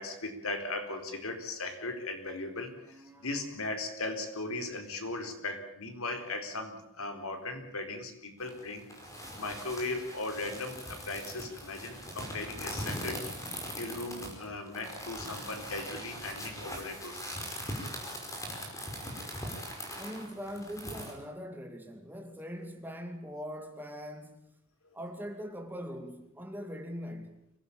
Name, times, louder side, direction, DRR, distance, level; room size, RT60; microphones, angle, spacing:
voice 1, 0.0-8.9 9.4-17.4, left 2 dB, 80° left, 4.3 m, -38 dB
voice 2, 2.8-3.4 20.0-24.5 24.9-27.4, equal, 10° right, 2.4 m, -42 dB
sound 1, 8.4-21.1, equal, 15° left, 5.3 m, -41 dB
25.5 x 17.5 x 8.9 m
head